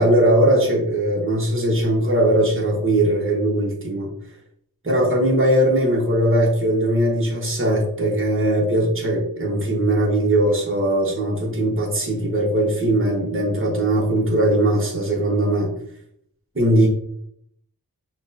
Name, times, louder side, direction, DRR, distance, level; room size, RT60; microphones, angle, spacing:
voice 1, 0.0-4.1 4.8-15.7 16.5-16.9, right 1 dB, 35° right, -3 dB, 1.2 m, -20 dB
6.2 x 2.4 x 2.7 m, 0.70 s
wide cardioid pair, 60°, 35 cm